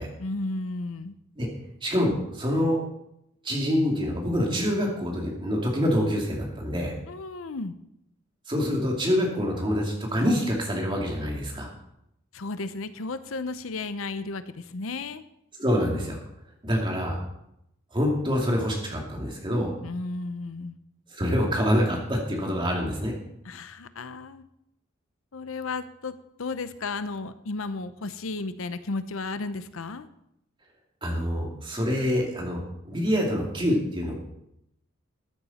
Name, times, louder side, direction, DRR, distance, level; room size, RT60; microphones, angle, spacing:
voice 1, 0.2-1.2 7.1-7.7 12.3-15.2 19.8-20.8 23.4-24.4 25.3-26.1 26.4-30.1, left 3 dB, 85° left, 12 dB, 0.7 m, -33 dB
voice 2, 1.8-2.8 3.4-6.9 8.5-11.7 15.6-16.2 16.6-17.2 17.9-19.7 21.1-23.1 31.0-34.1, equal, 25° right, -1 dB, 2.5 m, -26 dB
14.0 x 9.9 x 4.2 m, 0.81 s
head